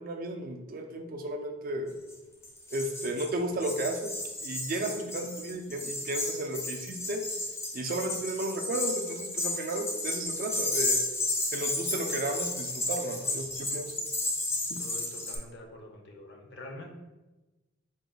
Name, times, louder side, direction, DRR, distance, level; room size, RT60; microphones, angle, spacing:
voice 1, 0.0-2.0 2.7-4.1 4.4-7.2 7.7-11.0 11.5-13.9 14.7-14.8, right 1 dB, 45° right, 4 dB, 0.4 m, -34 dB
sound 1, 2.1-2.2 2.4-15.4, left 2 dB, 15° left, 0.5 m, -33 dB
voice 2, 14.8-16.9, left 1 dB, 60° left, 2 dB, 0.6 m, -45 dB
3.8 x 2.2 x 3.8 m, 1.1 s
head